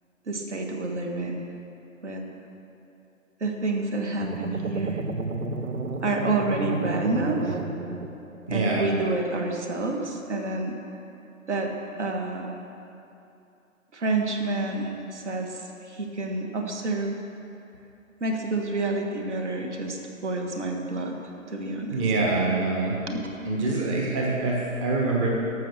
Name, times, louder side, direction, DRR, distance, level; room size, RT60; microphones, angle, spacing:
voice 1, 0.3-1.5 2.0-2.2 3.4-5.0 6.0-7.6 8.5-10.7 11.5-12.5 13.9-17.1 18.2-21.1 21.5-22.0 23.1-23.2, right 2 dB, 55° right, 2 dB, 1.5 m, -28 dB
sound 1, 4.2-8.5, right 3 dB, 85° right, 0.9 m, -32 dB
voice 2, 8.5-8.8 21.9-23.0 23.5-25.3, right 3 dB, 25° right, -2 dB, 1.2 m, -25 dB
14.0 x 6.1 x 6.6 m, 2.8 s
figure-of-eight pair, 140°, 41 cm